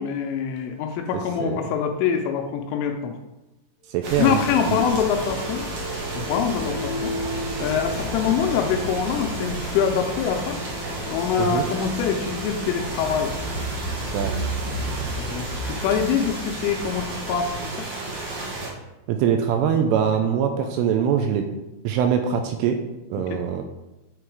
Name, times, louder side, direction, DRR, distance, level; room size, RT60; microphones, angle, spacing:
voice 1, 0.0-3.1 4.2-5.6 6.1-7.1 7.6-10.6 11.1-13.3 15.1-17.8 20.1-20.2 23.2-23.4, left 7 dB, 85° left, 4 dB, 3.0 m, -25 dB
sound 1, 3.9-14.4, equal, 55° left, 1.8 m, -34 dB
voice 2, 3.9-4.4 4.7-4.8 11.4-11.6 14.1-14.3 19.1-21.4 21.8-22.8 23.1-23.6, right 8 dB, 85° right, 5 dB, 2.9 m, -22 dB
sound 2, 4.0-18.7, right 2 dB, 60° right, 2.0 m, -33 dB
sound 3, 11.6-17.5, right 2 dB, 45° right, 2.2 m, -33 dB
9.1 x 3.8 x 4.7 m, 0.99 s
omnidirectional pair, 6.0 m